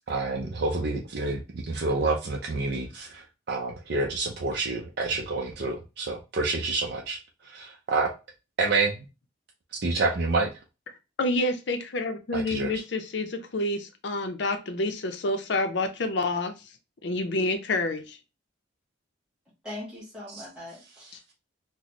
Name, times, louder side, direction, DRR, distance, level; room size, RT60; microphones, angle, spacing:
voice 1, 0.1-7.2 7.4-8.1 8.6-9.0 9.8-10.5 12.3-12.7, right 3 dB, 55° right, 0.5 m, -28 dB
voice 2, 11.2-16.6 17.0-18.2, left 2 dB, 65° left, 0.5 m, -28 dB
voice 3, 19.6-21.3, left 1 dB, 5° right, 1.7 m, -41 dB
4.0 x 2.1 x 2.9 m
head